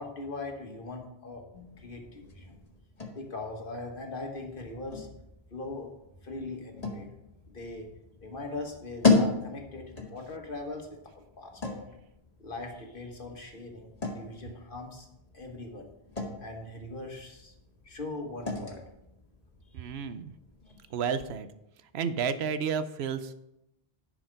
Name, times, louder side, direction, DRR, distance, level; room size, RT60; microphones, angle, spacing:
voice 1, 0.0-1.4 1.8-2.6 3.1-5.1 5.5-5.9 6.2-7.1 7.5-7.9 8.2-11.8 12.4-15.1 15.3-15.9 16.4-17.5 17.8-18.8 19.7-19.9, left 2 dB, 55° left, 2 dB, 1.6 m, -40 dB
sound 1, 1.5-21.1, left 3 dB, 40° left, 1.5 m, -35 dB
voice 2, 19.7-20.3 20.9-21.5 21.9-23.3, right 6 dB, 85° right, 12 dB, 0.9 m, -31 dB
11.0 x 5.0 x 5.2 m, 0.87 s
omnidirectional pair, 1.0 m